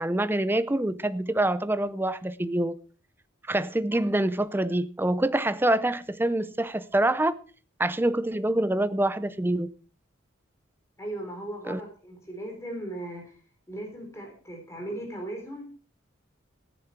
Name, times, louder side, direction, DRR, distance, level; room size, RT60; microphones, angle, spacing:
voice 1, 0.0-2.7 3.5-7.4 7.8-9.7 11.7-11.8, right 1 dB, 10° right, 0.5 m, -26 dB
voice 2, 11.0-13.3 13.7-15.6, right 1 dB, 15° left, 4.0 m, -37 dB
14.5 x 10.0 x 4.4 m
head